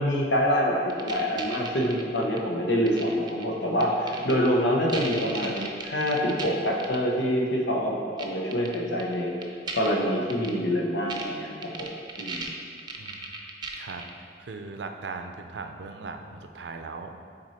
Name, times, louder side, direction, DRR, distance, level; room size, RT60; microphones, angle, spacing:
voice 1, 0.0-9.4 9.7-11.9 12.2-12.5, equal, 90° left, -1 dB, 1.0 m, -26 dB
sound 1, 0.9-2.4 2.9-3.4 3.8-4.5 4.9-6.5 6.8-7.0 8.2-8.3 8.5-9.1 9.4-9.9 10.3-10.5 11.1-11.2 11.6-14.1, right 3 dB, 25° right, 0.6 m, -36 dB
voice 2, 13.7-14.0 14.4-17.2, right 4 dB, 70° right, 6 dB, 0.5 m, -38 dB
6.2 x 4.4 x 4.3 m, 2.2 s
head